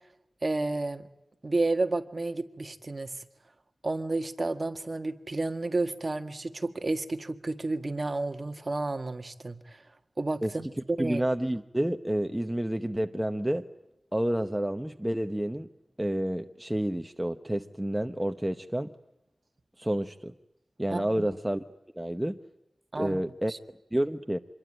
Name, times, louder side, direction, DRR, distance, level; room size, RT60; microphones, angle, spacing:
voice 1, 0.4-1.1 1.4-3.2 3.8-9.8 10.2-10.7 11.0-11.2 20.9-21.3 22.9-23.2 23.5-23.6, right 2 dB, 35° right, 7 dB, 1.7 m, -31 dB
voice 2, 11.0-13.6 14.1-15.7 16.0-18.9 19.8-20.3 20.8-21.6 22.0-22.4 22.9-23.5 23.9-24.4, right 1 dB, 10° right, 7 dB, 0.9 m, -29 dB
26.5 x 22.5 x 9.0 m, 0.87 s
wide cardioid pair, 90°, 0 cm